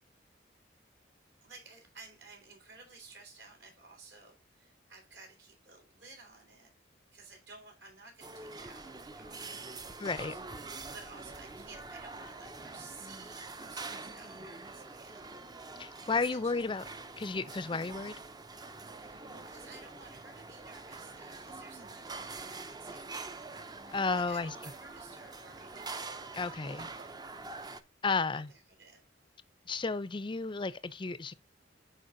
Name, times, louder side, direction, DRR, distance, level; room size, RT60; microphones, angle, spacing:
voice 1, 1.4-6.7 7.1-10.4 10.9-15.3 16.0-16.6 18.9-26.1 26.8-27.2 28.3-29.0, right 3 dB, 65° right, 3.7 m, -54 dB
sound 1, 8.2-27.8, right 3 dB, 20° right, 0.5 m, -45 dB
voice 2, 10.0-10.4 15.8-16.8 17.2-18.1 23.9-24.5 26.3-26.9 28.0-28.5 29.7-31.3, left 4 dB, 25° left, 0.5 m, -33 dB
11.0 x 4.6 x 2.6 m
head